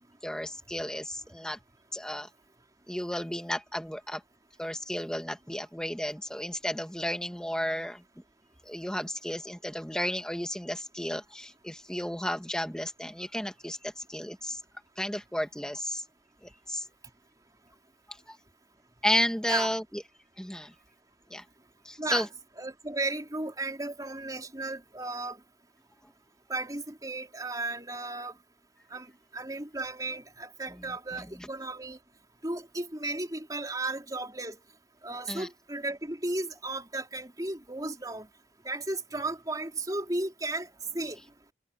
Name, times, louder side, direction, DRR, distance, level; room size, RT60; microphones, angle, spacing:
voice 1, 0.2-1.6 1.9-2.3 2.9-4.2 4.6-8.0 8.6-14.6 15.0-16.0 16.4-16.9 18.3-18.4 19.0-20.0 20.4-20.7 21.3-21.4 21.8-22.3 31.2-31.3 35.3-35.5, left 1 dB, 5° left, 2.2 m, -33 dB
voice 2, 22.6-25.4 26.5-28.3 28.9-32.0 32.4-34.6 35.0-38.3 38.6-40.7 40.9-41.2, right 2 dB, 20° right, 4.2 m, -34 dB
head